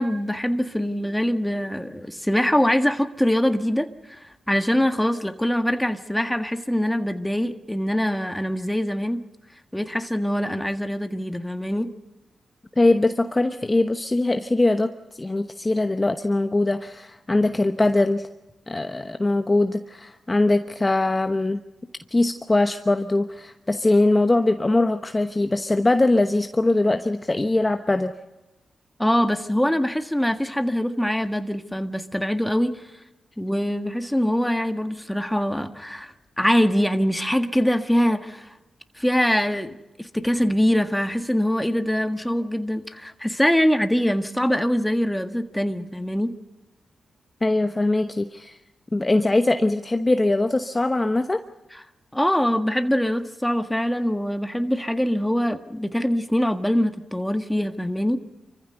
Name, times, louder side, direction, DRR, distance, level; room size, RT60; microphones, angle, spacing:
voice 1, 0.0-9.2 9.7-11.9 29.0-32.8 33.4-38.5 39.0-46.3 51.7-51.8 52.1-58.2, equal, 5° left, 8 dB, 1.6 m, -23 dB
voice 2, 12.8-14.9 15.2-18.3 18.7-21.6 22.1-28.1 47.4-48.6 48.9-51.4, left 2 dB, 25° left, 7 dB, 1.0 m, -21 dB
26.0 x 15.0 x 8.0 m, 0.99 s
supercardioid pair, 45°, 0 cm